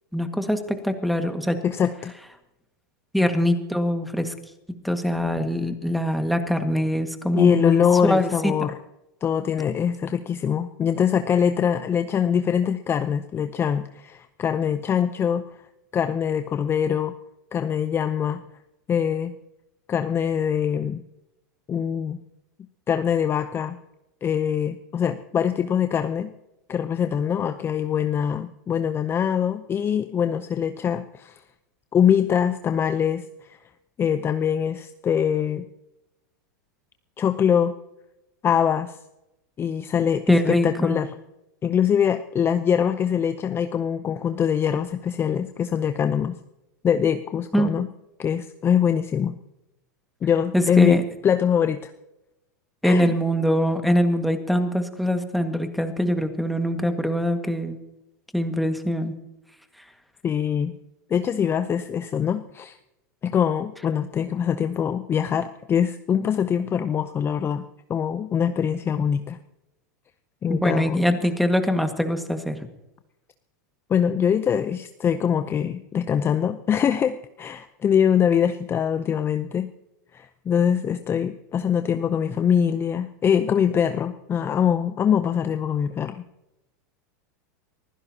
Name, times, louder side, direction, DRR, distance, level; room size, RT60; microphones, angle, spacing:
voice 1, 0.1-1.6 3.1-4.3 4.8-8.5 40.3-41.0 47.5-47.7 50.5-51.0 52.8-57.8 58.3-59.1 70.5-72.6, equal, ahead, 6 dB, 1.8 m, -23 dB
voice 2, 1.6-2.1 7.3-8.7 9.2-15.4 15.9-17.1 17.5-18.4 18.9-19.3 19.9-21.0 21.7-22.2 22.9-23.8 24.2-26.3 26.7-31.4 31.9-33.6 34.0-35.7 37.2-37.7 38.4-39.0 39.6-41.1 41.6-46.4 46.8-47.9 48.2-49.4 50.2-51.9 52.8-53.1 60.2-60.7 61.1-62.8 63.2-67.6 67.9-69.4 70.4-71.2 73.9-79.7 80.1-86.2, left 8 dB, 25° left, 9 dB, 0.7 m, -23 dB
23.5 x 16.0 x 2.9 m, 0.91 s
hypercardioid pair, 115°, 10 cm